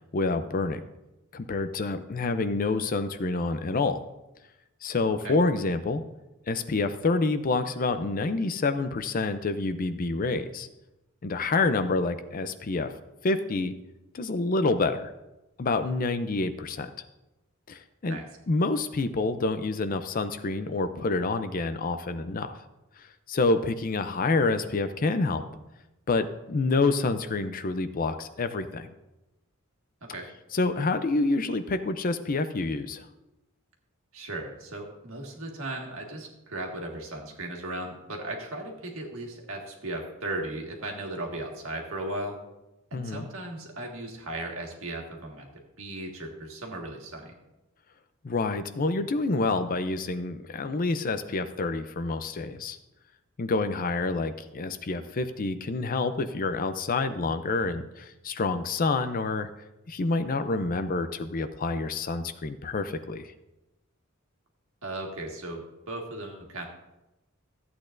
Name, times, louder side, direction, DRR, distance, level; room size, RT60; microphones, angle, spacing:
voice 1, 0.1-0.8 1.3-4.0 4.8-6.0 6.5-10.7 11.2-12.9 13.2-13.7 14.1-15.1 15.6-16.9 17.7-18.2 18.5-22.6 23.3-25.5 26.1-28.9 30.5-33.1 42.9-43.3 48.2-52.8 53.4-59.5 59.9-63.3, left 3 dB, 40° left, 11 dB, 0.5 m, -27 dB
voice 2, 34.1-42.4 42.9-45.5 45.8-47.3 64.8-66.7, right 1 dB, 70° right, 1 dB, 1.8 m, -36 dB
14.0 x 8.4 x 2.6 m, 0.96 s
head